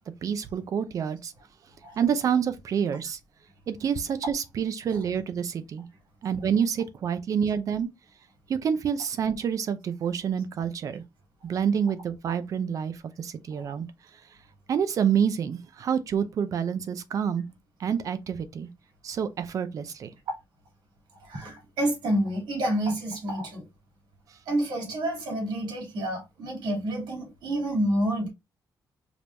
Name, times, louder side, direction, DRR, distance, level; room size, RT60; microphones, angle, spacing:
voice 1, 0.2-1.3 2.0-3.2 3.7-5.8 6.2-7.9 8.5-11.0 11.4-13.9 14.7-17.4 17.8-18.7 19.0-20.1, right 7 dB, 50° right, 0.6 m, -27 dB
voice 2, 21.2-23.7 24.5-28.3, right 1 dB, 80° right, 2.6 m, -29 dB
4.9 x 3.5 x 2.6 m
cardioid pair, 160°, 7 cm